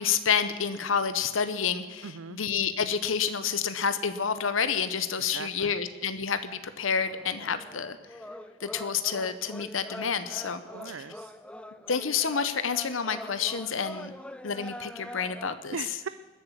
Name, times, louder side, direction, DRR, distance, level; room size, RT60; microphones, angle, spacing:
voice 1, 0.0-8.0 8.6-10.9 11.9-14.1 14.4-15.8, left 6 dB, 80° left, 11 dB, 0.9 m, -29 dB
voice 2, 2.0-2.4 5.3-5.8 10.7-11.3 15.7-16.1, right 6 dB, 85° right, 12 dB, 0.5 m, -39 dB
sound 1, 7.0-15.6, left 1 dB, 5° left, 0.4 m, -44 dB
20.5 x 8.0 x 7.5 m, 1.3 s
head